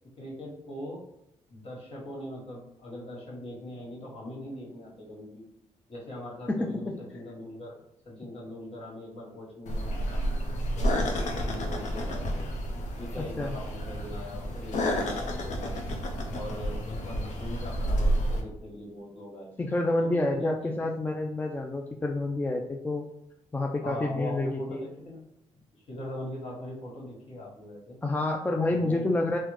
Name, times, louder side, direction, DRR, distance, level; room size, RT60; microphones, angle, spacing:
voice 1, 0.2-1.0 1.5-5.4 5.9-10.2 10.7-12.5 13.0-15.8 16.3-19.5 20.0-20.7 23.8-25.2 25.9-28.0 28.7-29.1, left 1 dB, 50° left, -3 dB, 1.4 m, -41 dB
voice 2, 6.5-6.9 13.2-13.6 19.6-23.1 23.5-24.9 28.0-29.4, left 2 dB, 15° left, 2 dB, 0.3 m, -28 dB
sound 1, 9.7-18.4, equal, 70° left, 0.6 m, -30 dB
3.2 x 2.0 x 3.2 m, 0.81 s
supercardioid pair, 60°, 13 cm